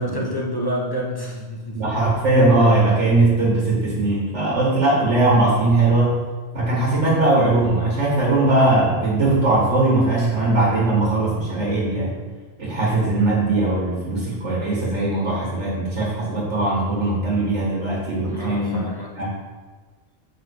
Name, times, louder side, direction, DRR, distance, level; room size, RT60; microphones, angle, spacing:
voice 1, 0.0-1.8 18.3-19.1, equal, 20° left, -3 dB, 1.3 m, -28 dB
voice 2, 1.7-6.2 6.5-12.2 12.6-18.9 19.2-19.3, right 2 dB, 65° right, -4 dB, 2.1 m, -19 dB
7.3 x 5.8 x 4.8 m, 1.3 s
omnidirectional pair, 1.3 m